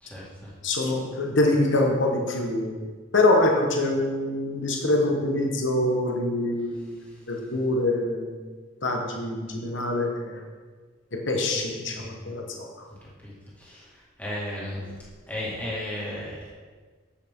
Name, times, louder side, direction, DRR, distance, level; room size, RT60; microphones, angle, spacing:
voice 1, 0.0-0.5 12.0-12.1 13.2-13.3 13.6-13.9 14.2-14.9 15.3-16.5, left 1 dB, 5° left, -7 dB, 2.1 m, -34 dB
voice 2, 0.6-2.8 3.1-8.4 8.8-10.4 11.1-12.7, left 2 dB, 60° left, 1 dB, 1.3 m, -25 dB
8.5 x 8.5 x 3.8 m, 1.5 s
head